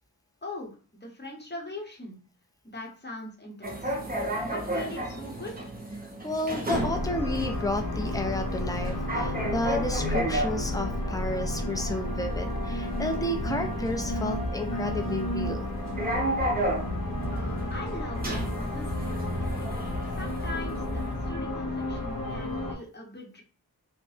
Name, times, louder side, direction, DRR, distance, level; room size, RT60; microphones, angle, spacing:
voice 1, 0.4-0.7 1.0-2.2 2.6-4.0 4.4-5.7 17.3-19.5 20.2-23.4, left 2 dB, 25° left, 0 dB, 0.8 m, -41 dB
sound 1, 3.6-21.1, right 1 dB, 25° right, 0.7 m, -34 dB
voice 2, 6.2-15.7, left 1 dB, 10° left, 5 dB, 0.4 m, -32 dB
sound 2, 6.7-22.7, left 1 dB, 55° left, 0.7 m, -32 dB
sound 3, 13.3-21.4, left 1 dB, 85° left, 1.4 m, -38 dB
2.7 x 2.1 x 3.2 m, 0.38 s
wide cardioid pair, 70°, 39 cm